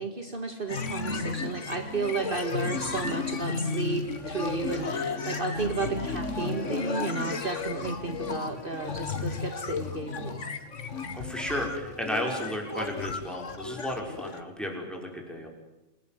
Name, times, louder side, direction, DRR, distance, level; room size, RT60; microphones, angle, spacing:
voice 1, 0.0-10.4, right 4 dB, 45° right, 4 dB, 2.2 m, -33 dB
sound 1, 0.7-14.4, left 4 dB, 75° left, 2.2 m, -33 dB
voice 2, 11.1-15.5, equal, ahead, 1 dB, 5.8 m, -33 dB
28.0 x 19.0 x 9.4 m, 0.94 s
omnidirectional pair, 1.3 m